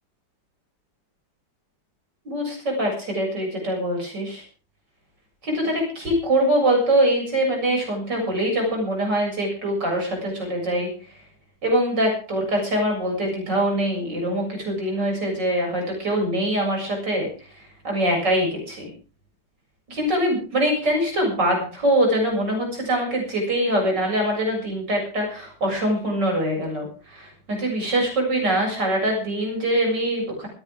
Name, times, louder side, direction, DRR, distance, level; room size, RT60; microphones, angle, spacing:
voice 1, 2.2-4.4 5.4-10.9 11.6-17.3 17.8-18.9 19.9-26.9 27.1-30.5, right 1 dB, 65° right, 1 dB, 8.0 m, -23 dB
20.0 x 16.0 x 3.7 m, 0.37 s
omnidirectional pair, 2.0 m